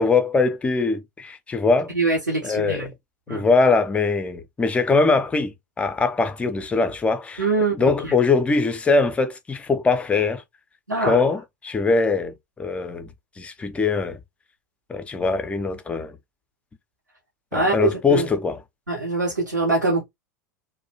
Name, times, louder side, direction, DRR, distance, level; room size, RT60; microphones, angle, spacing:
voice 1, 0.0-1.9 2.4-2.9 3.3-7.5 7.7-10.4 11.0-13.1 13.4-14.2 14.9-16.2 17.5-18.6, left 4 dB, 15° left, 0.4 m, -22 dB
voice 2, 1.9-2.9 3.3-3.4 7.4-7.8 8.0-8.1 10.9-11.2 17.5-18.3 18.9-20.0, right 3 dB, 85° right, 0.8 m, -23 dB
2.3 x 2.1 x 2.7 m
figure-of-eight pair, 85°, 9 cm